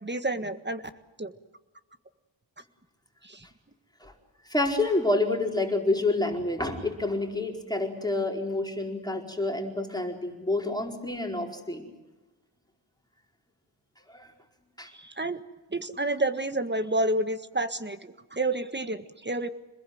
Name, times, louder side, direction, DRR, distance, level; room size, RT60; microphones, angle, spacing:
voice 1, 0.0-0.8 1.2-1.3 3.2-3.5 14.9-15.4 15.7-19.5, right 2 dB, 25° right, 10 dB, 1.6 m, -29 dB
voice 2, 4.4-11.9 14.1-14.3 14.8-14.9, left 2 dB, 10° left, 2 dB, 4.6 m, -28 dB
27.0 x 21.0 x 7.9 m, 1.1 s
wide cardioid pair, 80°, 46 cm